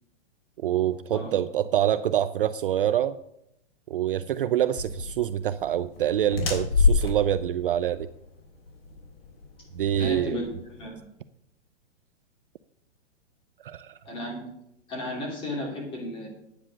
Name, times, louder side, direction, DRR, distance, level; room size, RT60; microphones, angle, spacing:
voice 1, 0.6-3.1 3.9-8.1 9.7-10.4 13.6-13.9, right 11 dB, 50° right, 14 dB, 0.5 m, -26 dB
sound 1, 4.8-10.9, left 4 dB, 55° left, 3.5 m, -28 dB
voice 2, 10.0-11.0 14.0-14.4 14.9-16.3, left 1 dB, 15° left, -1 dB, 2.9 m, -34 dB
10.0 x 8.8 x 6.2 m, 0.78 s
hypercardioid pair, 170°, 35 cm